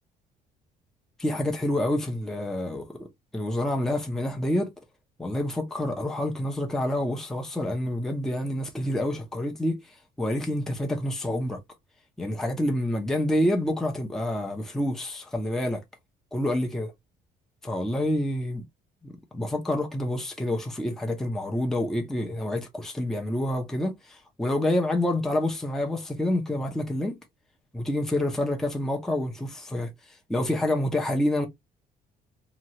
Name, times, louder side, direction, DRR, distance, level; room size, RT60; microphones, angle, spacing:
voice 1, 1.2-3.1 3.3-4.7 5.2-11.6 12.2-15.8 16.3-16.9 17.6-18.6 19.0-27.2 27.7-31.5, left 1 dB, 5° left, 0.6 m, -28 dB
2.9 x 2.3 x 2.8 m
cardioid pair, 110°, 17 cm